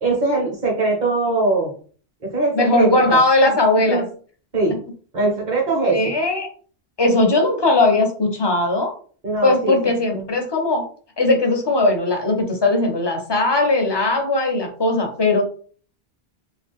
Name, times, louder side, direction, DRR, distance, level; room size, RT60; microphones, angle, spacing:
voice 1, 0.0-1.7 2.2-3.2 3.4-4.0 4.5-4.7 5.1-6.0 9.2-9.7 10.1-10.3, right 3 dB, 45° right, -2 dB, 1.2 m, -21 dB
voice 2, 2.5-4.0 5.9-6.5 7.0-8.9 9.4-10.9 11.2-15.4, left 2 dB, 30° left, 2 dB, 0.5 m, -18 dB
2.7 x 2.3 x 3.5 m, 0.43 s
omnidirectional pair, 1.1 m